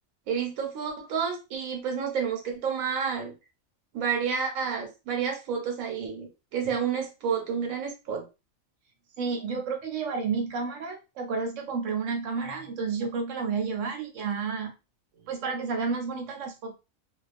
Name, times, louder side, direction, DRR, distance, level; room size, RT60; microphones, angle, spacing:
voice 1, 0.3-3.3 3.9-8.2, right 6 dB, 90° right, 3 dB, 1.2 m, -30 dB
voice 2, 9.2-14.7 15.3-16.7, right 5 dB, 70° right, 3 dB, 0.9 m, -31 dB
2.3 x 2.3 x 2.4 m, 0.27 s
omnidirectional pair, 1.4 m